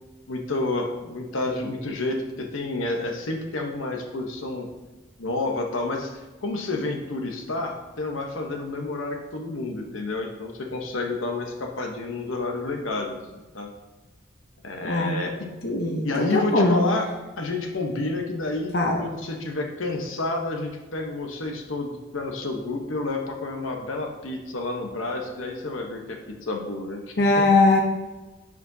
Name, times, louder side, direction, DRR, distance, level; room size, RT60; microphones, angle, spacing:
voice 1, 0.3-4.7 5.2-13.7 14.6-15.3 16.0-17.1 17.4-18.7 19.0-27.1, left 2 dB, 85° left, 2 dB, 1.0 m, -30 dB
voice 2, 14.8-15.2 15.6-16.8 18.7-19.0 27.2-27.8, left 2 dB, 55° left, 1 dB, 0.7 m, -20 dB
9.5 x 5.1 x 2.7 m, 1.1 s
head